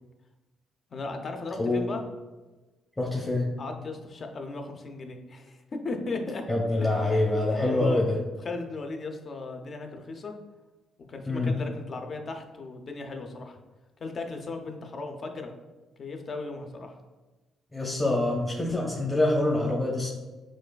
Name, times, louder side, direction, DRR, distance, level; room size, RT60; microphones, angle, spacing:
voice 1, 0.9-2.0 3.6-6.4 6.8-8.0 8.4-10.3 11.1-13.6 14.0-15.5 16.0-17.0, left 3 dB, 45° left, 4 dB, 0.6 m, -36 dB
voice 2, 1.6-1.9 3.0-3.4 6.5-8.1 11.3-11.5 17.7-20.1, left 2 dB, 20° left, -3 dB, 0.9 m, -25 dB
6.1 x 2.4 x 2.3 m, 1.2 s
cardioid pair, 80°, 0 cm